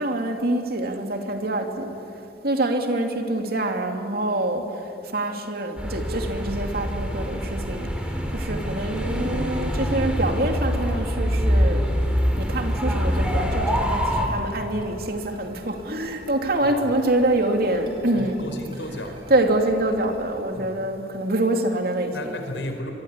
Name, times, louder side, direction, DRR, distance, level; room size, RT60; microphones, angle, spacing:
voice 1, 0.0-1.9 2.4-11.9 12.4-18.4 19.3-22.1, right 1 dB, 55° right, 4 dB, 2.8 m, -25 dB
sound 1, 5.8-14.3, equal, 5° right, 3.5 m, -25 dB
sound 2, 13.3-20.2, equal, 30° right, 6.2 m, -45 dB
voice 2, 16.6-17.0 18.1-19.2 20.5-20.8 22.1-22.9, left 1 dB, 85° left, 5 dB, 4.6 m, -34 dB
26.0 x 23.0 x 9.9 m, 2.7 s
head